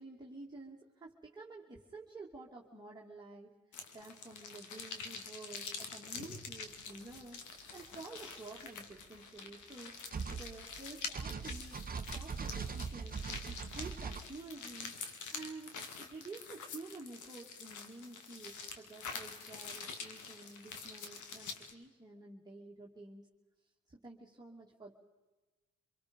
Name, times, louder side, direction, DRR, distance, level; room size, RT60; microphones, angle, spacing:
voice 1, 0.0-7.4 7.7-14.9 15.3-15.7 16.0-23.3 23.9-24.9, right 3 dB, 15° right, -4 dB, 2.5 m, -51 dB
sound 1, 3.7-21.7, left 5 dB, 75° left, 2.5 m, -46 dB
sound 2, 7.1-7.2 8.7-8.8 10.1-10.9 11.1-14.2, right 5 dB, 30° right, 1.1 m, -41 dB
26.5 x 23.0 x 5.3 m, 1.2 s
cardioid pair, 90°, 30 cm